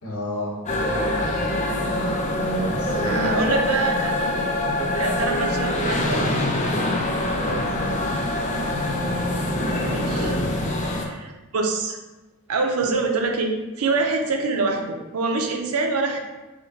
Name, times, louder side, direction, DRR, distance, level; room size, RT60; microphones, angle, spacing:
voice 1, 0.0-1.4 2.7-3.4 7.4-8.5 10.1-10.6, equal, 90° left, -4 dB, 1.3 m, -32 dB
sound 1, 0.7-11.1, left 1 dB, 35° left, 0.4 m, -24 dB
voice 2, 3.0-6.3 9.8-10.3 10.9-12.0 12.5-13.5 13.8-16.2, right 3 dB, 90° right, 3 dB, 0.6 m, -25 dB
5.7 x 2.2 x 2.7 m, 1.1 s
head